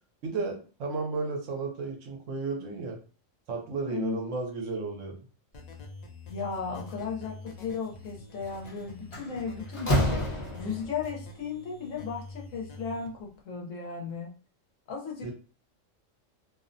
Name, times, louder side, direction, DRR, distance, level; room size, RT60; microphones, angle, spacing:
voice 1, 0.2-3.0 3.5-5.2 15.2-15.3, right 3 dB, 70° right, 1 dB, 1.0 m, -33 dB
voice 2, 3.9-4.2 6.3-14.3 14.9-15.3, left 5 dB, 75° left, -1 dB, 1.1 m, -35 dB
sound 1, 5.5-13.1, left 2 dB, 90° left, 0.3 m, -46 dB
Slam, 8.5-8.7 9.1-11.0, equal, 30° left, 0.7 m, -28 dB
2.7 x 2.0 x 2.5 m, 0.37 s
omnidirectional pair, 1.4 m